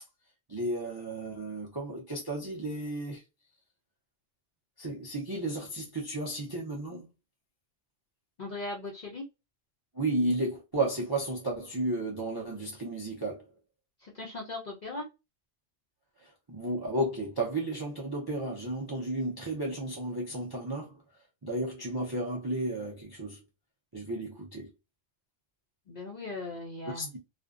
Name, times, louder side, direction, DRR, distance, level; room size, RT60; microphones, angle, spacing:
voice 1, 0.5-3.2 4.8-7.1 9.9-13.5 16.2-21.0 21.4-23.4 23.9-24.7 26.9-27.2, right 1 dB, 35° right, 0.3 m, -33 dB
voice 2, 8.4-9.3 14.0-15.1 25.9-27.1, left 2 dB, 50° left, 0.5 m, -38 dB
2.4 x 2.1 x 2.4 m
omnidirectional pair, 1.3 m